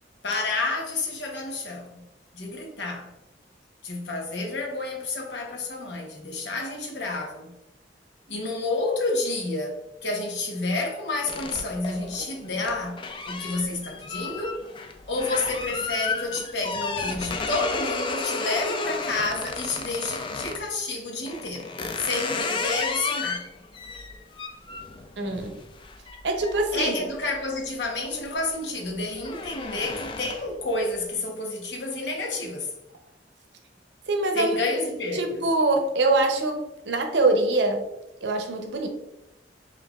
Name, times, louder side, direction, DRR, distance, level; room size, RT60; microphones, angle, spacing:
voice 1, 0.2-2.0 2.3-3.1 3.8-7.5 8.3-14.6 15.1-21.7 22.0-23.5 26.7-32.7 34.3-35.4, left 2 dB, 70° left, 0.8 m, -30 dB
sound 1, 11.3-20.7 21.3-27.7 28.1-28.5 28.8-30.6, left 4 dB, 30° left, 0.3 m, -33 dB
voice 2, 25.2-25.6 26.2-26.9 34.1-34.6 35.1-37.9 38.2-38.9, right 2 dB, 70° right, 0.6 m, -24 dB
5.2 x 2.5 x 2.3 m
head